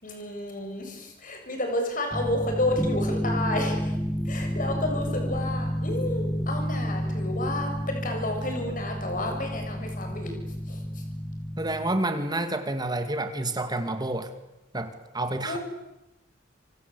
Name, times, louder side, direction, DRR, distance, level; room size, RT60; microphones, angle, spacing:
voice 1, 0.0-3.8 4.3-10.3 10.7-10.8 15.5-15.6, left 1 dB, 45° left, 4 dB, 7.0 m, -31 dB
sound 1, 2.1-12.0, equal, 5° left, 1.5 m, -30 dB
voice 2, 11.6-14.3 14.7-15.6, right 2 dB, 20° right, 8 dB, 2.4 m, -29 dB
27.0 x 25.5 x 8.5 m, 0.96 s
head